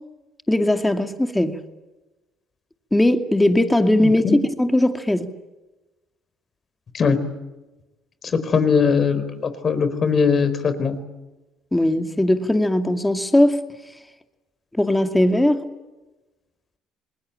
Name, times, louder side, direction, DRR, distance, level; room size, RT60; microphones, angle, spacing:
voice 1, 0.5-1.6 2.9-5.3 11.7-13.6 14.7-15.6, left 1 dB, 10° left, 2.4 m, -19 dB
voice 2, 4.0-4.4 6.9-7.2 8.3-11.0, left 5 dB, 45° left, 4.1 m, -20 dB
27.0 x 20.5 x 9.0 m
supercardioid pair, 75°, 0 cm